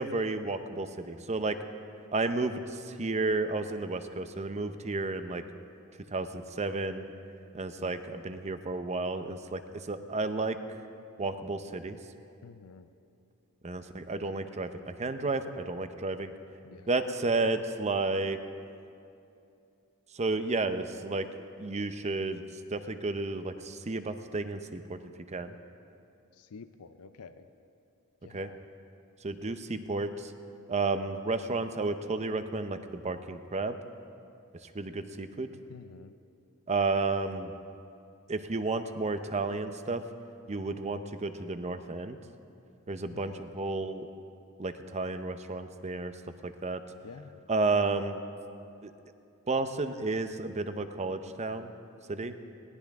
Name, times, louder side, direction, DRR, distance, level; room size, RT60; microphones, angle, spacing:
voice 1, 0.0-1.6 2.1-5.4 6.1-7.1 7.5-10.6 11.2-12.0 13.6-16.3 16.9-18.4 20.1-21.3 21.6-22.4 22.7-25.0 25.3-25.6 28.3-28.5 29.2-30.3 30.7-33.8 34.7-35.5 36.7-37.5 38.3-40.0 40.5-42.2 42.9-44.1 44.6-46.1 46.4-46.8 47.5-48.2 48.8-48.9 49.5-51.7 52.1-52.4, right 3 dB, 30° right, 9 dB, 0.7 m, -32 dB
voice 2, 12.4-12.9 16.6-16.9 26.4-27.5 28.2-28.6 35.7-36.1 43.1-43.5 47.0-47.4, left 5 dB, 80° left, 10 dB, 0.6 m, -49 dB
20.5 x 18.0 x 3.6 m, 2.6 s
head